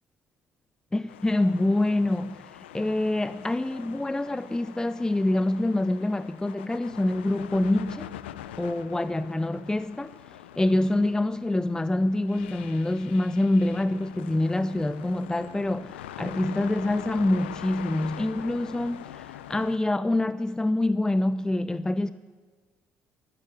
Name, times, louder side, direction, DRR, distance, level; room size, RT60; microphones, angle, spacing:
voice 1, 0.9-8.1 8.6-10.1 10.6-22.1, left 1 dB, 10° left, 0.5 m, -26 dB
sound 1, 1.1-19.8, left 11 dB, 90° left, 0.5 m, -43 dB
14.0 x 9.9 x 8.2 m
hypercardioid pair, 55°, 6 cm